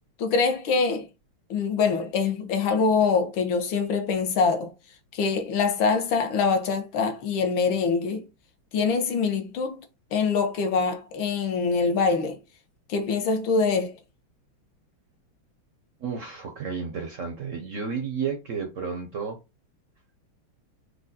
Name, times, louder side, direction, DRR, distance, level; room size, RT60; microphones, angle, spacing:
voice 1, 0.2-1.1 1.5-4.7 5.1-8.2 8.7-9.8 10.1-12.4 12.9-13.9, left 5 dB, 75° left, 1.6 m, -24 dB
voice 2, 16.0-19.4, right 6 dB, 70° right, 0.7 m, -32 dB
4.9 x 2.3 x 4.0 m
omnidirectional pair, 2.3 m